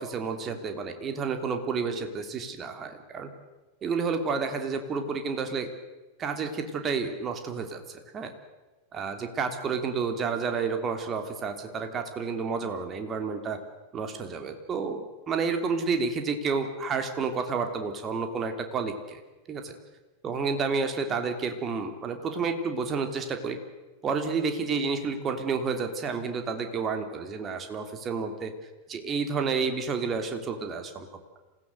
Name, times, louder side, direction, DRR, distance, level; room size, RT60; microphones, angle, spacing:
voice 1, 0.0-3.3 3.8-5.7 6.2-8.3 8.9-13.6 13.9-19.2 19.5-19.7 20.2-23.6 24.0-28.5 28.9-31.1, right 5 dB, 25° right, 6 dB, 2.9 m, -30 dB
27.0 x 16.5 x 7.9 m, 1.2 s
figure-of-eight pair, 90°, 0 cm